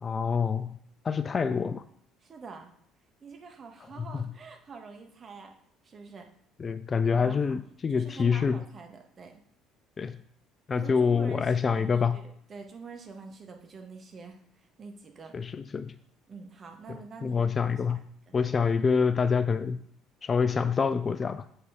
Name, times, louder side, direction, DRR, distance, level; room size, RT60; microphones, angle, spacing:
voice 1, 0.0-0.8 1.0-1.8 4.1-4.3 6.6-8.6 10.0-10.2 10.7-12.2 15.3-15.9 16.9-18.0 18.3-19.8 20.2-21.4, left 5 dB, 30° left, 12 dB, 0.4 m, -26 dB
voice 2, 2.2-2.7 3.2-5.5 5.8-6.3 7.1-7.5 7.9-9.4 10.7-15.4 16.3-18.3, right 4 dB, 35° right, 4 dB, 1.3 m, -46 dB
7.5 x 5.4 x 3.6 m, 0.67 s
figure-of-eight pair, 55°, 0 cm